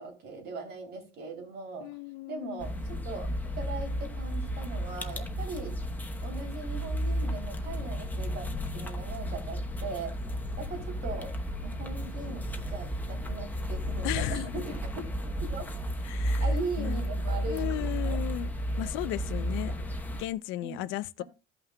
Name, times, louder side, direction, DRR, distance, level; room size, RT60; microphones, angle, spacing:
voice 1, 0.0-1.9 2.3-5.7 6.2-8.5 8.7-10.1 10.6-11.3 11.6-15.1 15.4-15.7 16.1-18.2 18.8-19.3 19.7-19.8 20.6-21.2, right 3 dB, 55° right, 3.1 m, -40 dB
voice 2, 1.8-2.7 14.0-14.6 16.0-16.4 16.8-17.0 17.5-18.5 18.8-19.7 20.2-21.2, left 15 dB, 80° left, 0.5 m, -35 dB
sound 1, 2.6-20.3, equal, 10° left, 0.9 m, -33 dB
15.5 x 5.8 x 2.2 m
cardioid pair, 145°, 20 cm